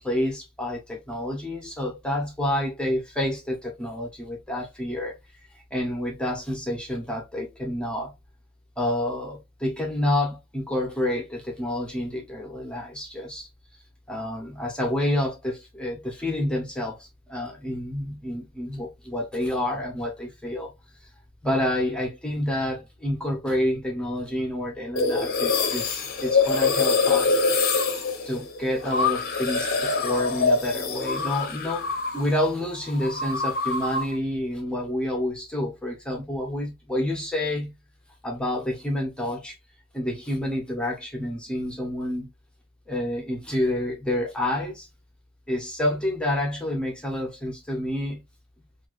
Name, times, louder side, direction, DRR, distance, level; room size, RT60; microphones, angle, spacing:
voice 1, 0.0-5.2 5.5-8.1 8.8-13.5 14.1-20.7 21.4-27.4 28.2-37.7 38.2-39.6 39.9-42.3 42.9-44.9 45.5-48.2, left 1 dB, 5° left, 0.7 m, -28 dB
sound 1, 25.0-32.4 32.6-34.2, left 4 dB, 45° left, 0.6 m, -25 dB
2.9 x 2.4 x 2.9 m
head